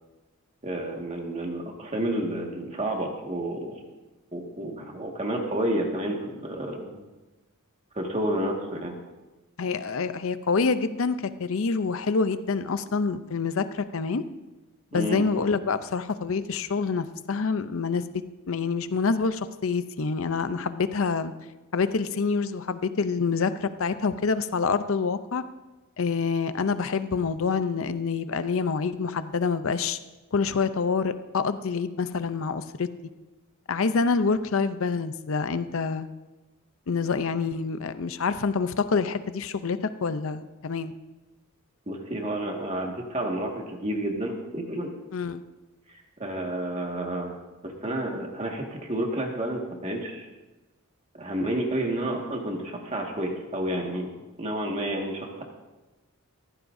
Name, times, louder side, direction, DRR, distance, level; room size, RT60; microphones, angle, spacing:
voice 1, 0.6-3.8 4.3-7.0 8.0-9.0 14.9-15.2 41.9-44.9 45.9-50.3 51.1-54.1 54.4-55.4, right 1 dB, 30° right, 1 dB, 1.8 m, -30 dB
voice 2, 9.6-14.2 14.9-18.2 18.5-21.3 21.7-25.4 26.0-30.0 30.3-32.9 33.7-36.1 36.9-40.9 45.1-45.4, left 4 dB, 65° left, 12 dB, 0.6 m, -27 dB
16.0 x 14.5 x 2.7 m, 1.1 s
head